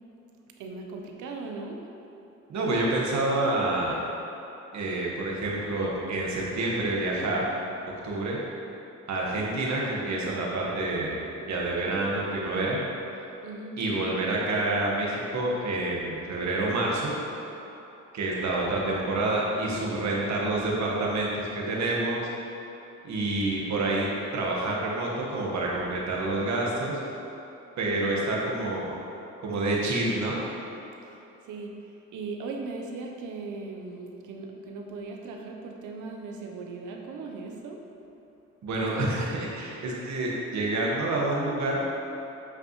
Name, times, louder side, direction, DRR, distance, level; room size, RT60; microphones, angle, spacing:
voice 1, 0.6-1.9 13.4-13.8 31.0-37.9, right 3 dB, 80° right, 2 dB, 0.9 m, -38 dB
voice 2, 2.5-4.0 4.7-7.4 8.0-8.4 9.1-12.8 13.8-17.1 18.1-22.2 23.0-27.0 27.8-29.0 29.4-30.4 38.6-41.9, right 2 dB, 65° right, -3 dB, 1.5 m, -28 dB
8.5 x 5.3 x 3.1 m, 3.0 s
cardioid pair, 90°, 30 cm